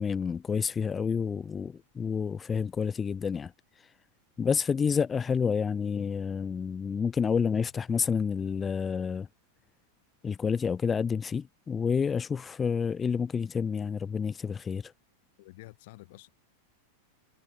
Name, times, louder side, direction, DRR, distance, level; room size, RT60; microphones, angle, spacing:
voice 1, 0.0-3.9 4.4-9.3 10.2-14.9, left 6 dB, 20° left, 2.0 m, -29 dB
voice 2, 15.4-16.3, left 20 dB, 50° left, 4.0 m, -49 dB
figure-of-eight pair, 90°, 0 cm